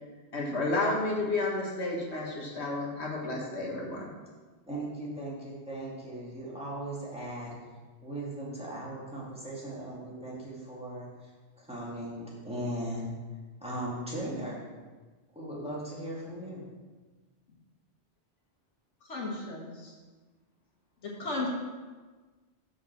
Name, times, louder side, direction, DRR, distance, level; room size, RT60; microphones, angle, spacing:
voice 1, 0.3-4.1, left 2 dB, 70° left, -2 dB, 1.8 m, -31 dB
voice 2, 4.7-7.6 8.0-11.1 11.6-13.1 13.6-14.6 15.3-16.6, right 1 dB, 5° right, -6 dB, 2.3 m, -38 dB
voice 3, 19.1-19.9 21.0-21.5, left 2 dB, 90° left, -3 dB, 2.0 m, -35 dB
7.6 x 5.3 x 6.8 m, 1.3 s
omnidirectional pair, 1.2 m